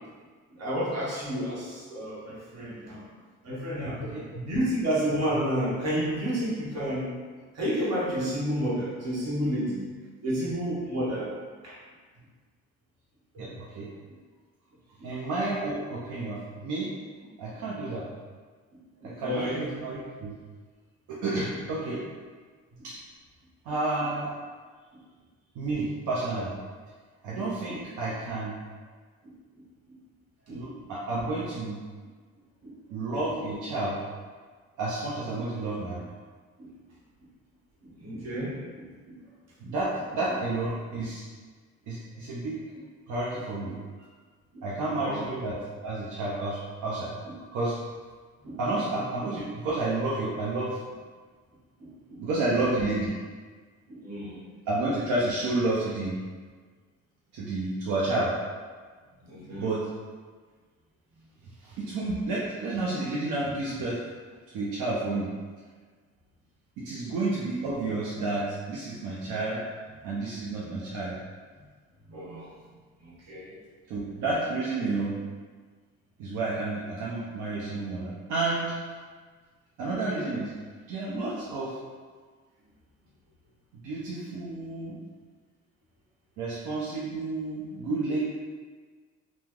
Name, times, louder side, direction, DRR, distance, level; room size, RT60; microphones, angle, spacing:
voice 1, 0.6-3.0 3.4-7.1 7.5-9.9 10.2-11.4 11.6-11.8 13.3-13.5 15.0-15.1 19.0-19.7 27.3-27.8 29.2-29.3 30.5-30.7 32.6-32.7 36.6-36.7 37.8-39.2 43.6-43.7 44.5-44.7 45.0-45.3 48.4-48.6 51.8-52.2 53.9-54.4 59.2-59.7 70.6-70.7 72.1-72.5 73.0-73.5, equal, 55° right, -6 dB, 1.1 m, -31 dB
voice 2, 13.4-13.9 15.0-16.9 17.4-18.1 19.0-20.3 21.1-22.0 22.8-23.0 23.6-24.3 25.6-26.6 27.2-28.6 30.5-31.8 32.9-34.0 34.8-36.1 39.6-41.3 41.9-42.6 43.1-43.7 44.0-44.1 44.6-45.6 45.8-47.2 47.5-47.8 48.6-50.8 52.2-53.1 54.7-56.2 57.3-58.3 59.6-59.8 61.6-64.0 64.5-65.3 66.8-69.6 70.0-71.2 73.9-75.1 76.2-78.8 79.8-80.5 80.9-81.8 83.8-85.0 86.4-88.2, right 2 dB, 85° right, -6 dB, 0.6 m, -30 dB
2.9 x 2.0 x 3.5 m, 1.5 s
cardioid pair, 90°, 30 cm